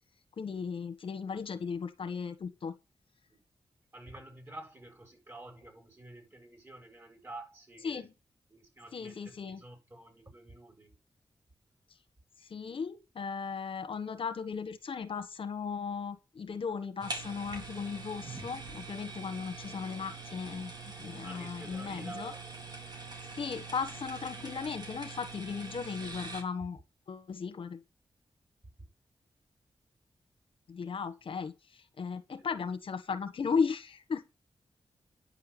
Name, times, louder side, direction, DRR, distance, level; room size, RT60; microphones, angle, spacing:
voice 1, 0.4-2.7 7.8-8.1 8.9-9.6 12.4-22.3 23.4-26.8 27.1-27.8 30.7-34.2, left 5 dB, 70° left, 1.4 m, -36 dB
voice 2, 3.9-8.1 8.5-10.9 21.2-22.4 32.4-32.5, right 1 dB, 25° right, 7.3 m, -50 dB
sound 1, 17.0-26.4, right 4 dB, 45° right, 4.1 m, -43 dB
9.9 x 6.8 x 7.0 m
cardioid pair, 65°, 9 cm